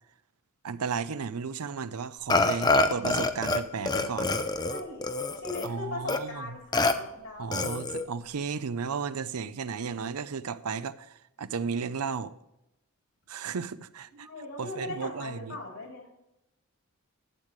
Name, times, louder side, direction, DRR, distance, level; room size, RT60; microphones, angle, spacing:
voice 1, 0.6-4.4 5.6-6.6 7.4-12.3 13.3-14.3 14.6-15.6, right 5 dB, 80° right, 0.6 m, -34 dB
Burping eructation, 2.3-3.6 3.9-5.7 6.1-6.2 6.7-6.9 7.5-8.0, left 2 dB, 20° left, 0.6 m, -26 dB
voice 2, 4.7-7.6 14.1-16.1, left 2 dB, 75° left, 3.4 m, -39 dB
12.5 x 8.3 x 3.2 m
head